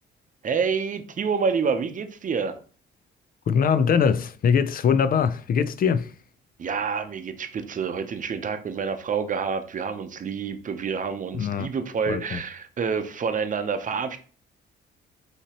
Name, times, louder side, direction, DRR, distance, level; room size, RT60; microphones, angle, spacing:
voice 1, 0.4-2.6 6.6-14.2, right 6 dB, 40° right, 0.7 m, -28 dB
voice 2, 3.5-6.1 11.3-11.7 12.1-12.4, left 6 dB, 45° left, 0.4 m, -22 dB
5.6 x 2.9 x 2.9 m
cardioid pair, 90°, 20 cm